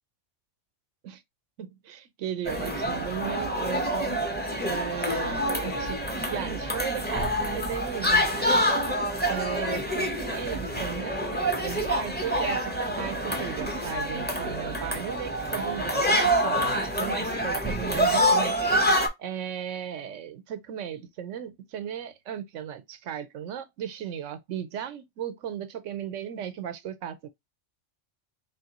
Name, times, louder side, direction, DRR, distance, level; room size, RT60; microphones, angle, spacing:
voice 1, 1.6-4.2 4.6-8.8 9.3-11.2 11.6-27.3, right 9 dB, 85° right, 1.0 m, -36 dB
sound 1, 2.5-19.1, equal, 10° left, 0.7 m, -27 dB
4.2 x 3.1 x 2.9 m
omnidirectional pair, 1.2 m